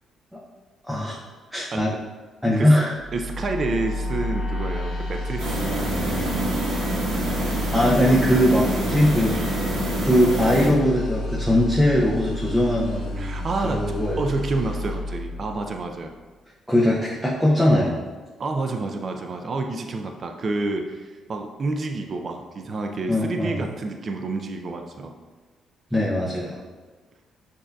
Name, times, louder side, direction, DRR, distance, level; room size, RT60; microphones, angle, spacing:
voice 1, 0.9-1.2 1.5-1.9 2.4-2.9 7.4-7.5 7.7-9.3 10.0-14.2 16.7-18.0 23.1-23.6 25.9-26.6, left 1 dB, ahead, -5 dB, 0.6 m, -20 dB
sound 1, 2.9-16.0, left 1 dB, 85° left, 1.0 m, -31 dB
voice 2, 3.1-5.7 13.2-16.1 18.4-25.2, right 3 dB, 45° right, 4 dB, 0.3 m, -29 dB
sound 2, 5.4-10.7, right 1 dB, 80° right, 1.1 m, -26 dB
6.3 x 2.6 x 2.3 m, 1.3 s
cardioid pair, 90°, 0 cm